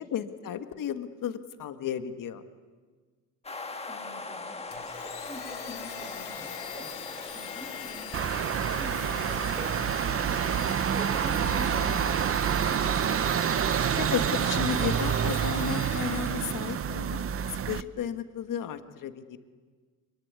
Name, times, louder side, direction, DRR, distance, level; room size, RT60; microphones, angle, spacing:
voice 1, 0.0-2.4 14.0-17.2 17.5-19.4, left 8 dB, 55° left, 8 dB, 1.8 m, -33 dB
sound 1, 3.4-15.0, left 3 dB, 15° left, 1.7 m, -43 dB
voice 2, 3.9-13.1, right 1 dB, 20° right, 3 dB, 4.8 m, -45 dB
Domestic sounds home sounds, 4.7-16.8, left 8 dB, 75° left, 4.0 m, -42 dB
sound 2, 8.1-17.8, right 8 dB, 35° right, 0.8 m, -28 dB
26.0 x 23.0 x 9.8 m, 1.5 s
cardioid pair, 110°, 38 cm